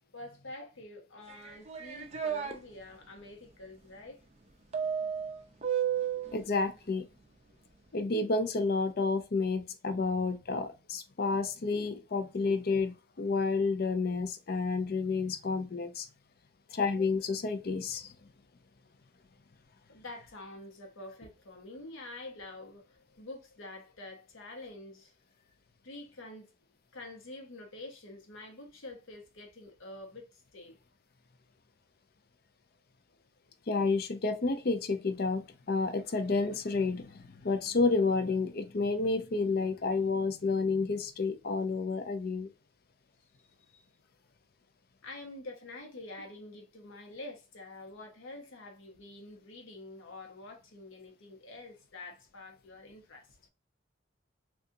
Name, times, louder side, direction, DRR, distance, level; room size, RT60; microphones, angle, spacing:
voice 1, 0.1-4.2 16.7-16.8 19.9-25.1 25.8-26.5 26.9-30.8 33.4-33.5 43.4-43.9 45.0-53.4, left 2 dB, 80° left, 0.9 m, -47 dB
sound 1, 1.3-2.6 4.7-6.4, right 8 dB, 35° right, 0.5 m, -32 dB
voice 2, 6.3-7.1 7.9-16.1 16.7-18.1 33.7-42.5, left 4 dB, 50° left, 0.5 m, -30 dB
3.8 x 2.3 x 2.6 m
head